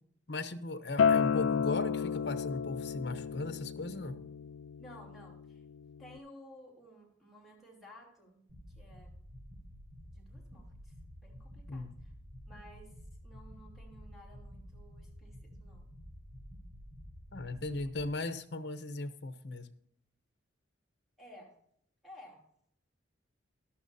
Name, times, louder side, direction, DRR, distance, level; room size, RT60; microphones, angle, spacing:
voice 1, 0.3-4.2 11.7-11.9 17.3-19.7, left 2 dB, 60° left, 10 dB, 0.9 m, -37 dB
Acoustic guitar, 1.0-6.2, left 6 dB, 80° left, 0.3 m, -32 dB
voice 2, 4.8-5.6 6.0-8.4 8.8-9.2 10.1-12.1 12.5-12.9 13.2-15.9 17.3-17.8 21.2-21.6 22.0-22.4, equal, ahead, -3 dB, 3.0 m, -55 dB
sound 1, 8.5-18.0, equal, 60° right, 2.7 m, -51 dB
14.0 x 11.5 x 2.7 m, 0.69 s
head